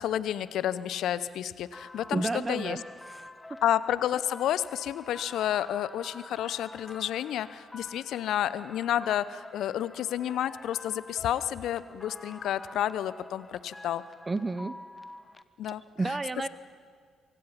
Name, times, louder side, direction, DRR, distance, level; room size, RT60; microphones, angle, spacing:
voice 1, 0.0-2.8 3.6-14.0 15.6-15.8 16.1-16.2, left 11 dB, 65° left, 17 dB, 0.8 m, -30 dB
sound 1, 1.7-15.4, left 2 dB, 15° left, 1.2 m, -48 dB
voice 2, 2.1-3.3 14.3-14.7 16.0-16.5, right 3 dB, 25° right, 14 dB, 0.8 m, -31 dB
25.5 x 24.5 x 5.9 m, 2.1 s
figure-of-eight pair, 40°, 0 cm